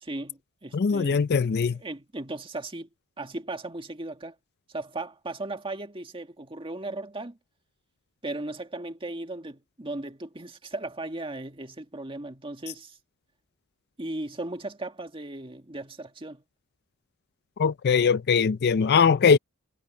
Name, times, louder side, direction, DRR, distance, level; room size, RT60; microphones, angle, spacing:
voice 1, 0.0-1.3 1.8-2.9 3.2-4.4 4.7-7.4 8.2-13.0 14.0-16.4, right 2 dB, 25° right, 1.8 m, -36 dB
voice 2, 0.7-1.8 17.6-19.4, left 6 dB, 45° left, 0.4 m, -21 dB
head